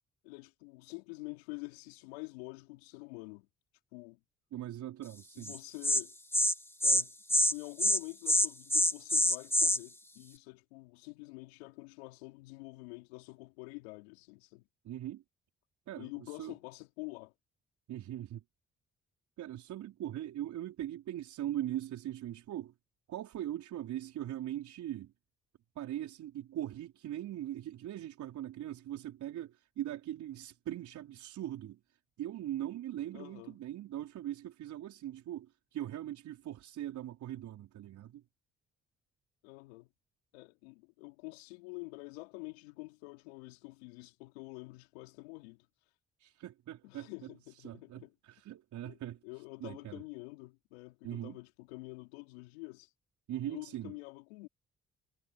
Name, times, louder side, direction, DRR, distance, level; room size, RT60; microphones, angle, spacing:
voice 1, 0.2-3.5 3.9-4.2 5.4-6.2 6.8-14.7 16.0-17.3 33.1-33.6 39.4-39.9 40.3-45.7 46.8-48.1 48.8-49.0 49.2-52.9 53.4-54.5, left 27 dB, 85° left, 3.7 m, -47 dB
voice 2, 4.5-5.6 14.8-15.2 15.9-16.5 17.9-18.4 19.4-22.7 23.1-25.1 25.7-31.8 32.2-38.2 46.2-49.2 49.6-50.0 51.0-51.4 53.3-53.9, right 12 dB, 70° right, 4.7 m, -41 dB
Insect, 5.5-5.6 5.8-6.0 6.3-6.5 6.8-7.0 7.3-7.5 7.8-8.0 8.3-9.8, left 1 dB, 10° left, 1.8 m, -26 dB
hypercardioid pair, 45°, 31 cm